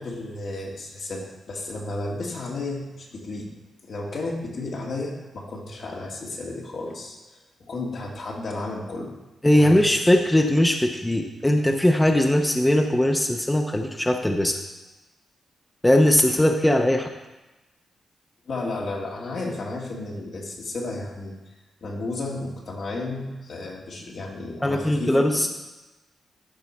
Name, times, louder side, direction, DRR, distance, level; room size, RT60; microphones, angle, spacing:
voice 1, 0.0-3.5 3.8-7.4 7.7-9.1 9.5-9.9 18.5-21.4 21.8-25.2, left 2 dB, 65° left, -2 dB, 1.9 m, -33 dB
voice 2, 9.4-14.6 15.8-17.1 24.6-25.5, left 1 dB, 15° left, 3 dB, 0.8 m, -20 dB
12.0 x 4.6 x 4.3 m, 1.1 s
supercardioid pair, 50°, 0 cm